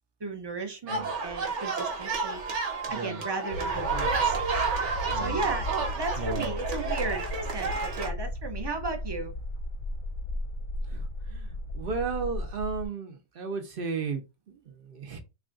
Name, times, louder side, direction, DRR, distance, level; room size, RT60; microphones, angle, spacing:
voice 1, 0.2-2.4 2.9-4.4 5.2-7.3 7.5-9.3, right 3 dB, 30° right, 0.5 m, -35 dB
sound 1, 0.9-8.1, right 4 dB, 90° right, 1.3 m, -30 dB
voice 2, 2.9-3.2 5.1-5.5 6.2-6.5 10.9-15.2, right 4 dB, 55° right, 0.8 m, -35 dB
sound 2, 3.5-12.9, left 1 dB, 50° left, 0.7 m, -35 dB
3.3 x 2.4 x 3.7 m
omnidirectional pair, 1.2 m